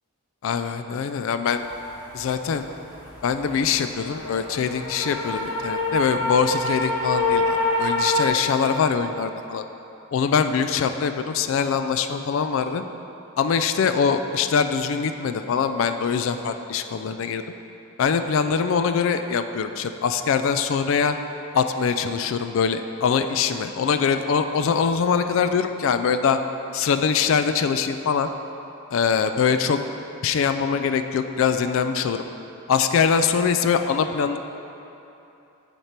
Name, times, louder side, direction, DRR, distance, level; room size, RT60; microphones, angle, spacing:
voice 1, 0.4-1.6 2.1-2.6 3.2-9.6 10.1-12.8 13.4-17.4 18.0-21.2 21.5-26.4 26.7-28.3 28.9-29.8 30.2-32.2 32.7-34.4, left 6 dB, 60° left, 9 dB, 0.3 m, -23 dB
sound 1, 1.6-8.3, left 2 dB, 85° left, 1.0 m, -27 dB
8.0 x 4.4 x 4.4 m, 2.9 s
head